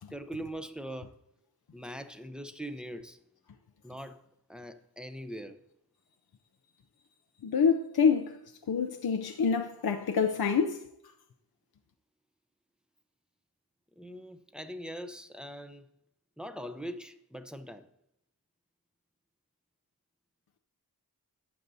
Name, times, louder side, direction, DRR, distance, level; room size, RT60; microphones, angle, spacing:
voice 1, 0.1-1.2 1.7-3.2 3.8-4.2 4.5-5.6 14.0-15.9 16.4-17.9, equal, ahead, 0.8 m, -41 dB
voice 2, 7.4-10.9, left 6 dB, 75° left, 0.7 m, -27 dB
12.0 x 7.7 x 2.7 m
wide cardioid pair, 45°, 37 cm